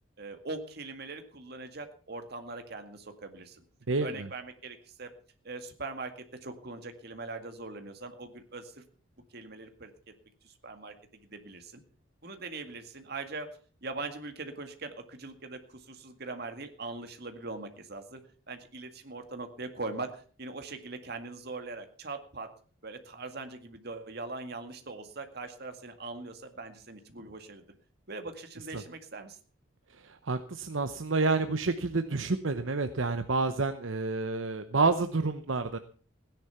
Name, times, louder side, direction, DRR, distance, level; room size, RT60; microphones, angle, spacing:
voice 1, 0.2-3.6 4.0-5.1 5.4-8.8 9.3-9.9 10.4-10.9 11.2-11.8 12.2-18.2 18.5-22.5 22.8-27.6 28.1-29.4, right 3 dB, 50° right, 7 dB, 2.0 m, -41 dB
voice 2, 3.9-4.3 28.7-28.8 30.0-35.8, right 3 dB, 70° right, 9 dB, 0.9 m, -29 dB
16.5 x 10.5 x 5.8 m, 0.41 s
head